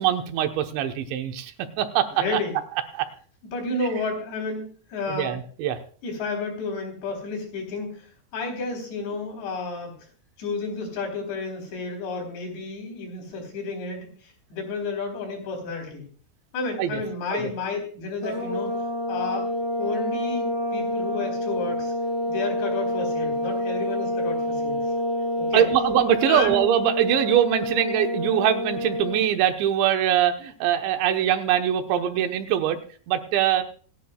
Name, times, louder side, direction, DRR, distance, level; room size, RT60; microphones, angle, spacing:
voice 1, 0.0-2.4 2.9-3.1 5.1-5.8 16.8-17.0 17.3-17.5 25.5-32.8 33.1-33.6, right 11 dB, 85° right, 6 dB, 3.4 m, -23 dB
voice 2, 2.1-2.5 3.5-4.6 4.9-5.3 6.0-8.1 8.3-9.9 10.4-14.0 14.5-16.1 16.5-19.5 19.8-21.9 22.3-24.8 25.4-25.6 26.3-26.6, left 3 dB, 75° left, 2 dB, 6.1 m, -31 dB
sound 1, 18.2-29.3, left 1 dB, 25° left, 5.3 m, -28 dB
26.5 x 10.0 x 2.3 m, 0.43 s
omnidirectional pair, 5.1 m